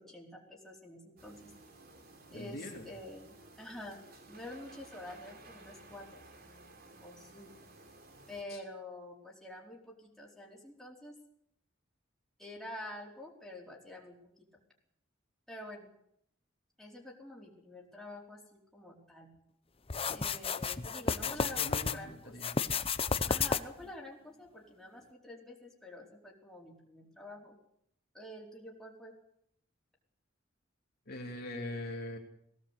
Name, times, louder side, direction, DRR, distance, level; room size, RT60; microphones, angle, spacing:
voice 1, 0.0-1.5 2.3-4.0 4.3-6.2 7.0-7.5 8.3-11.2 12.4-14.5 15.5-15.9 16.8-19.3 20.1-21.6 21.9-22.3 23.3-27.5 28.1-29.1, left 1 dB, ahead, -3 dB, 4.4 m, -48 dB
sound 1, 1.2-8.4, right 2 dB, 50° right, 3.4 m, -55 dB
voice 2, 2.3-2.9 8.5-8.6 21.2-22.5 31.1-32.2, left 1 dB, 55° left, 1 dB, 3.1 m, -42 dB
sound 2, 19.9-22.0 22.4-23.8, left 5 dB, 30° left, 0.7 m, -32 dB
19.5 x 17.5 x 8.3 m, 0.72 s
head